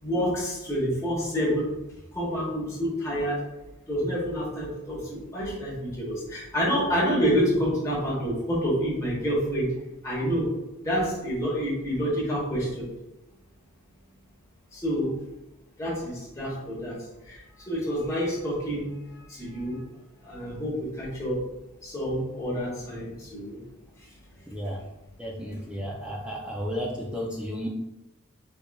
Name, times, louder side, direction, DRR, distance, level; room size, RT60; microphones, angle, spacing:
voice 1, 0.0-1.7 2.1-3.4 3.9-9.7 10.0-10.5 10.8-12.9 14.7-15.1 15.8-16.9 17.3-19.0 19.3-19.8 20.2-21.4 21.8-23.6, equal, 15° left, -6 dB, 1.0 m, -28 dB
voice 2, 24.5-24.8 25.2-27.7, equal, 5° right, -3 dB, 0.3 m, -33 dB
4.4 x 2.4 x 2.2 m, 0.95 s
head